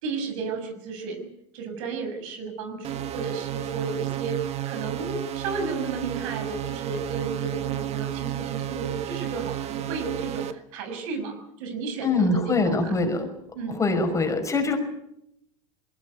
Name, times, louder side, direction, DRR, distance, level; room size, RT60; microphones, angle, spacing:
voice 1, 0.0-1.3 1.5-12.9 13.5-13.8, right 4 dB, 70° right, 6 dB, 7.1 m, -33 dB
sound 1, 2.8-10.5, right 13 dB, 35° right, 1.7 m, -32 dB
voice 2, 12.0-13.3 13.7-14.8, left 3 dB, 15° left, 5 dB, 5.5 m, -23 dB
21.5 x 18.5 x 9.4 m, 0.80 s
supercardioid pair, 125°, 17 cm